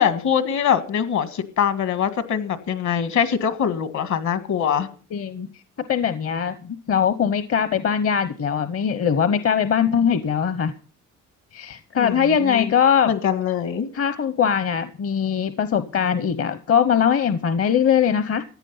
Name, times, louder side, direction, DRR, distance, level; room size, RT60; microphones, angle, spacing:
voice 1, 0.0-4.9 12.0-12.7 13.1-13.9, left 8 dB, 70° left, 12 dB, 1.8 m, -23 dB
voice 2, 5.1-5.5 5.9-10.7 11.5-13.1 13.9-18.4, left 7 dB, 50° left, 12 dB, 0.9 m, -21 dB
15.0 x 10.0 x 5.6 m, 0.40 s
cardioid pair, 90°, 30 cm